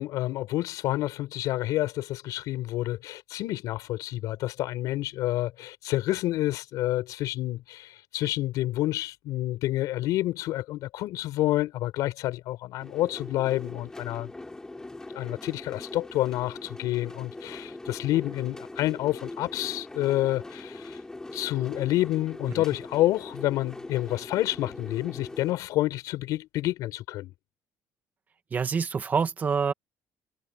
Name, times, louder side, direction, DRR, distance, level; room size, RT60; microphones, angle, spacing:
voice 1, 0.0-14.3 15.1-21.0 21.3-27.3, left 16 dB, 75° left, 4.8 m, -29 dB
sound 1, 12.8-25.5, left 2 dB, 10° left, 6.9 m, -41 dB
voice 2, 28.5-29.7, right 6 dB, 25° right, 2.0 m, -26 dB
cardioid pair, 155°, 6 cm